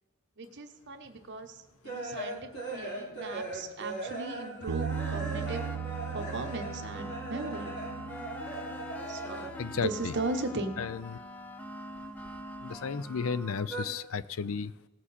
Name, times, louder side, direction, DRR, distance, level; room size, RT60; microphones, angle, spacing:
voice 1, 0.4-5.7 6.1-7.8 9.1-10.8, right 2 dB, 55° right, 6 dB, 1.1 m, -38 dB
Kalyani - Sphuritam, 1.0-9.8 10.0-11.2 11.5-12.9 13.2-13.8, right 2 dB, 50° left, 3.1 m, -40 dB
Bass guitar, 4.7-10.9, right 7 dB, 70° right, 0.4 m, -39 dB
sound 1, 4.9-13.7, left 1 dB, 10° left, 0.6 m, -43 dB
voice 2, 9.6-10.1 10.8-11.0 12.6-14.7, left 6 dB, 70° left, 16 dB, 0.4 m, -33 dB
17.5 x 7.3 x 4.2 m, 1.1 s
head